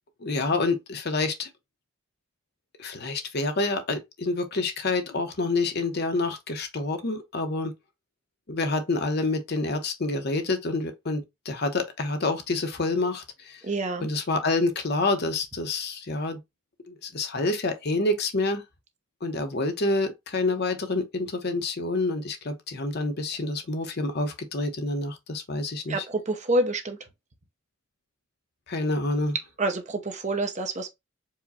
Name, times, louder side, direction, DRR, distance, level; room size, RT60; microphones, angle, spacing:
voice 1, 0.2-1.5 2.8-7.7 8.5-13.6 14.0-16.4 16.9-18.6 19.2-26.1 28.7-29.4, left 2 dB, 50° left, 0.8 m, -28 dB
voice 2, 13.6-14.1 25.9-27.0 29.6-30.9, right 2 dB, 35° right, 0.7 m, -27 dB
4.7 x 2.2 x 4.1 m
head